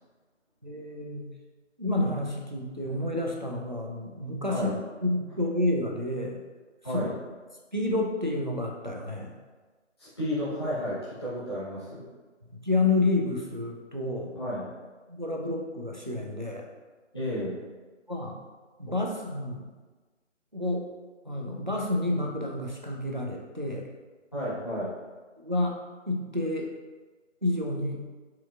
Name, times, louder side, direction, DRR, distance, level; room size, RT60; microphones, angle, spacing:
voice 1, 0.6-1.3 1.8-4.7 5.0-6.4 6.9-7.0 7.7-9.3 12.4-14.3 15.1-16.6 18.1-18.4 18.8-19.7 20.5-20.9 21.2-23.8 25.4-25.7 26.1-26.7 27.4-28.0, left 2 dB, 40° right, -1 dB, 0.4 m, -29 dB
voice 2, 10.0-12.1 14.3-14.7 17.1-17.6 18.9-19.0 24.3-24.9, equal, 20° left, -12 dB, 0.9 m, -32 dB
4.4 x 3.4 x 2.3 m, 1.3 s
figure-of-eight pair, 165°, 37 cm